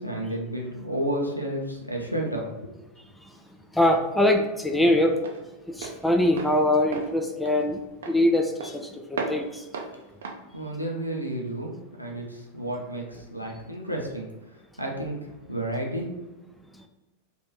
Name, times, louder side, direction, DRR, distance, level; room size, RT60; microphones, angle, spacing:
voice 1, 0.0-2.7 10.5-14.3 14.8-16.1, right 1 dB, 90° left, -1 dB, 0.6 m, -31 dB
Walk footsteps, 3.0-11.6, right 4 dB, 65° right, 0.5 m, -38 dB
voice 2, 3.7-5.2 5.7-9.7, left 1 dB, 5° left, 4 dB, 0.4 m, -23 dB
3.3 x 2.6 x 4.1 m, 1.1 s
figure-of-eight pair, 90°, 0 cm